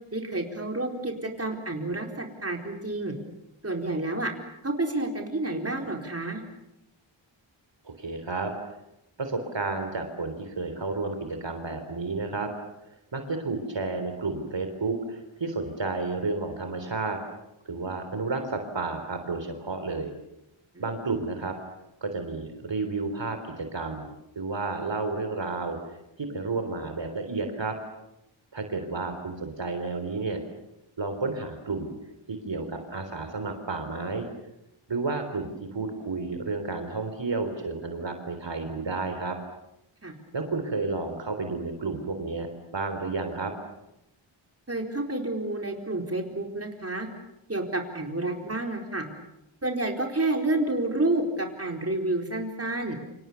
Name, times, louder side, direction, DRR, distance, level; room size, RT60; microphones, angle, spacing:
voice 1, 0.1-3.1 3.6-4.3 4.6-6.4 20.7-20.9 40.0-40.1 44.7-47.1 47.5-49.1 49.6-53.0, right 2 dB, 30° right, 2 dB, 4.3 m, -29 dB
voice 2, 7.8-8.5 9.2-12.5 13.1-17.2 17.7-20.1 20.8-21.5 22.0-24.1 24.4-27.8 28.5-30.4 31.0-31.9 32.3-34.3 34.9-39.4 40.3-42.5 42.7-43.5, right 3 dB, 60° right, 6 dB, 3.7 m, -31 dB
29.0 x 27.0 x 7.0 m, 0.86 s
wide cardioid pair, 90°, 49 cm